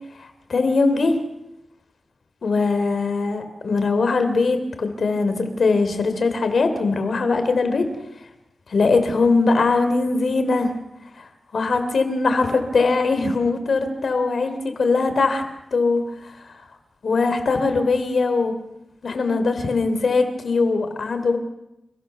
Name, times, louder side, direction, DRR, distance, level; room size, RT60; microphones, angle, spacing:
voice 1, 0.2-1.1 2.4-7.8 8.7-10.7 11.2-11.3 11.5-15.4 15.7-16.0 17.0-18.5 19.0-21.4, left 3 dB, 75° left, 8 dB, 3.4 m, -21 dB
29.5 x 16.0 x 6.9 m, 0.89 s
wide cardioid pair, 75°, 0 cm